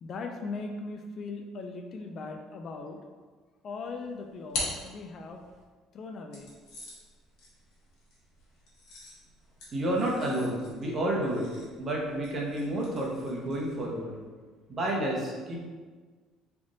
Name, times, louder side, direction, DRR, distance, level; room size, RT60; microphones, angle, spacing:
voice 1, 0.0-3.0 3.6-5.4 5.9-6.5, left 3 dB, 45° left, 4 dB, 0.4 m, -39 dB
sound 1, 3.8-5.6 6.3-13.9, left 2 dB, 75° left, 1.2 m, -43 dB
voice 2, 9.7-11.5 11.8-14.2 14.7-15.6, right 1 dB, 35° right, -2 dB, 0.9 m, -30 dB
3.4 x 2.5 x 3.8 m, 1.5 s
cardioid pair, 105°, 0 cm